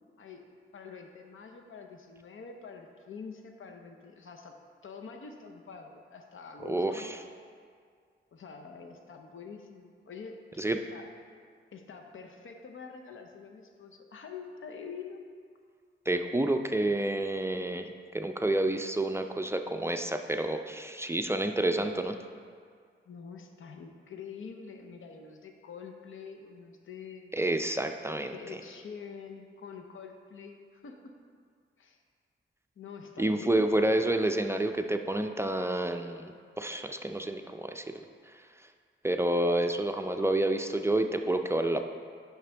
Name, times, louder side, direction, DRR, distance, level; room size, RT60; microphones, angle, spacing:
voice 1, 0.7-7.1 8.3-11.1 11.7-15.2 23.1-27.3 28.3-31.1 31.8-32.0 32.8-33.7, left 5 dB, 75° left, 4 dB, 0.7 m, -46 dB
voice 2, 6.6-7.2 10.6-10.8 16.1-17.9 18.1-22.2 27.3-28.3 33.2-38.0 39.0-41.9, right 1 dB, 10° right, 5 dB, 0.4 m, -29 dB
9.5 x 6.0 x 3.4 m, 2.1 s
wide cardioid pair, 85°, 21 cm